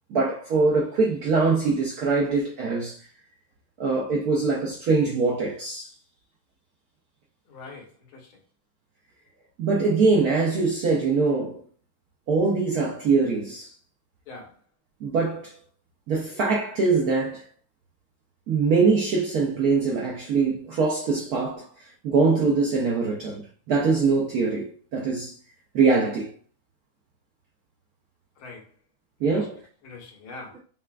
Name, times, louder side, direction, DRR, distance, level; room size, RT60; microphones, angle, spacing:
voice 1, 0.1-3.0 3.8-5.9 9.6-11.6 12.3-13.7 15.0-15.6 16.1-17.5 18.5-21.7 22.0-23.4 23.7-25.3 25.7-26.3 29.2-29.6, right 4 dB, 70° right, 0.9 m, -23 dB
voice 2, 7.5-8.4 14.3-14.6 28.4-28.7 29.2-29.5 29.8-30.6, left 3 dB, 85° left, 1.9 m, -43 dB
5.3 x 2.4 x 2.2 m
omnidirectional pair, 2.2 m